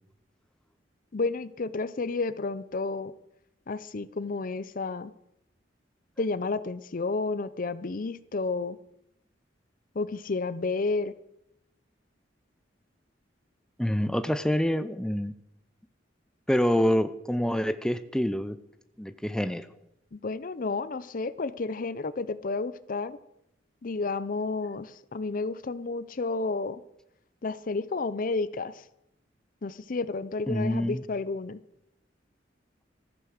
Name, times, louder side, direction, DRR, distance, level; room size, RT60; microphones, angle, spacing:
voice 1, 1.1-3.1 3.7-5.1 6.2-8.8 10.0-11.1 20.1-23.2 23.8-26.8 27.4-28.8 29.6-31.6, left 3 dB, 50° left, 16 dB, 0.6 m, -31 dB
voice 2, 13.8-15.3 16.5-18.6 19.0-19.7 30.5-31.0, equal, 5° left, 12 dB, 0.5 m, -26 dB
14.5 x 9.4 x 6.5 m, 0.84 s
head